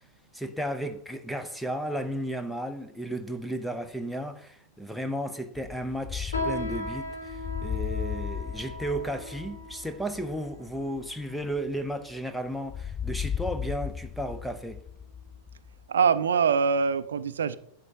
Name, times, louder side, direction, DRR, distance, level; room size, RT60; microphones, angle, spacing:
voice 1, 0.3-14.8, right 1 dB, ahead, 0.8 m, -34 dB
sound 1, 5.6-12.2 12.7-15.9, left 8 dB, 20° left, 0.4 m, -36 dB
sound 2, 6.3-12.0 12.7-12.8 13.5-13.8 14.2-14.4 15.1-15.2, left 1 dB, 70° left, 1.4 m, -38 dB
voice 2, 15.9-17.6, right 6 dB, 65° right, 0.4 m, -23 dB
10.5 x 7.9 x 2.9 m
figure-of-eight pair, 90°, 0 cm